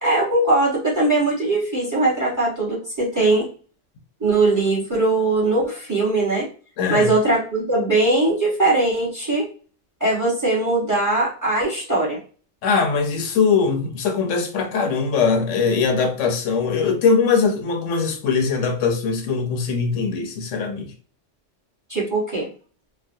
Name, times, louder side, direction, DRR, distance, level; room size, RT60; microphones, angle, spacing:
voice 1, 0.0-3.5 4.2-6.4 6.9-9.4 10.0-12.2 21.9-22.5, right 2 dB, 15° right, 1.1 m, -20 dB
voice 2, 6.8-7.1 12.6-20.9, left 5 dB, 85° left, 1.0 m, -21 dB
3.1 x 2.1 x 2.6 m
omnidirectional pair, 1.2 m